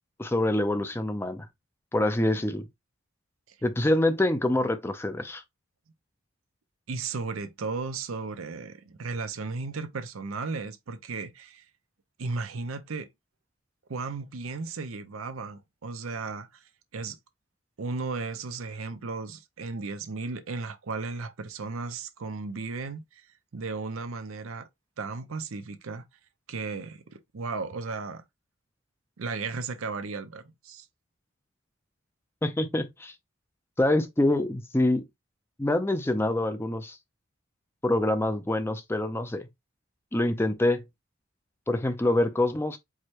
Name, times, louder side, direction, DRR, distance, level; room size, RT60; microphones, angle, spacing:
voice 1, 0.2-1.5 1.9-2.7 3.6-5.4 32.4-33.1 33.8-35.0 35.6-37.0 37.8-39.5 40.1-40.8 41.7-42.8, left 1 dB, 10° left, 0.4 m, -25 dB
voice 2, 6.9-11.7 12.2-13.1 13.9-16.6 16.9-17.2 17.8-23.3 23.5-24.7 25.0-26.0 26.5-28.2 29.2-30.9, right 4 dB, 80° right, 0.6 m, -35 dB
4.8 x 2.2 x 4.3 m
head